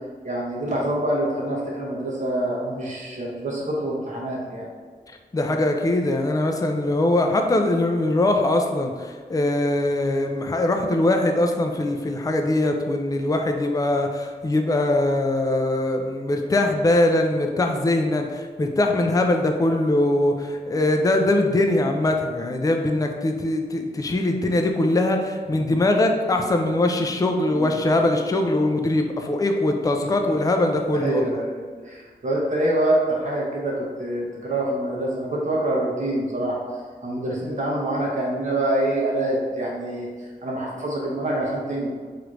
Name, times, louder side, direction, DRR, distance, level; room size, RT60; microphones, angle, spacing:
voice 1, 0.2-4.7 27.5-27.8 31.0-41.9, right 1 dB, 50° right, -3 dB, 0.7 m, -26 dB
voice 2, 5.3-31.4, left 1 dB, 20° left, 4 dB, 0.3 m, -22 dB
3.2 x 2.5 x 3.0 m, 1.6 s
wide cardioid pair, 65°, 17 cm